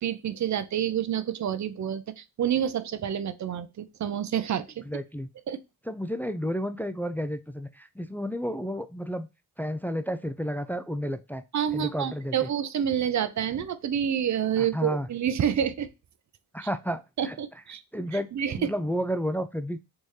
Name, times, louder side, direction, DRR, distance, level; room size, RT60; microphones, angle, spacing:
voice 1, 0.0-4.8 5.5-5.6 11.5-15.9 17.2-17.8 18.3-18.7, right 9 dB, 45° right, 0.5 m, -28 dB
voice 2, 4.9-5.3 5.9-9.3 9.6-11.4 11.7-12.5 14.6-15.1 16.5-17.4 17.9-19.8, equal, 5° left, 0.3 m, -31 dB
3.5 x 3.1 x 2.7 m
supercardioid pair, 55°, 40 cm